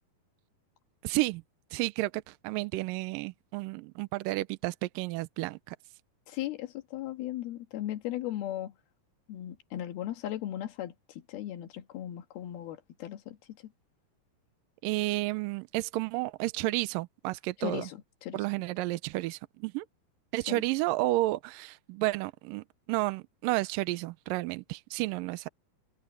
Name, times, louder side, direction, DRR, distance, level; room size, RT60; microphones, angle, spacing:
voice 1, 1.0-1.4 1.7-5.8 14.8-17.9 18.3-19.9 20.3-25.5, right 19 dB, 80° right, 2.2 m, -31 dB
voice 2, 6.3-8.7 9.3-13.7 17.6-18.5 20.5-20.6, left 13 dB, 90° left, 3.4 m, -37 dB
omnidirectional pair, 4.2 m